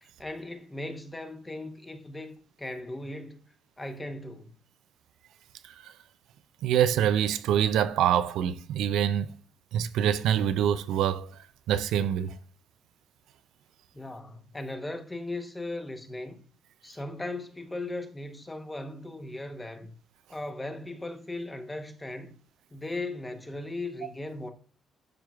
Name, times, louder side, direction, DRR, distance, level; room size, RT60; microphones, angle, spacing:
voice 1, 0.0-3.4 3.8-4.5 13.9-16.4 16.8-19.9 20.3-22.4 22.7-24.5, left 2 dB, 15° left, 0.9 m, -38 dB
voice 2, 6.6-9.3 9.7-11.3 11.7-12.4, right 9 dB, 85° right, 0.4 m, -25 dB
11.5 x 4.5 x 2.3 m
cardioid pair, 90°, 0 cm